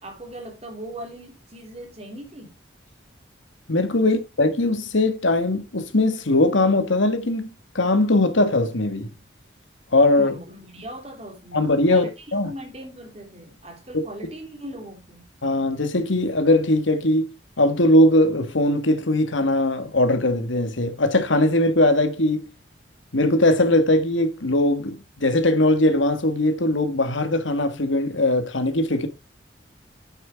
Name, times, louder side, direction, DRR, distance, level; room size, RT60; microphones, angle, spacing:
voice 1, 0.0-2.5 4.0-4.1 10.1-11.6 11.9-15.2, right 1 dB, 35° right, 3.3 m, -39 dB
voice 2, 3.7-7.5 7.7-9.1 9.9-10.4 11.5-12.5 13.9-14.0 15.4-17.3 17.6-22.5 23.1-29.1, left 1 dB, 85° left, 1.6 m, -20 dB
9.1 x 7.7 x 3.6 m
head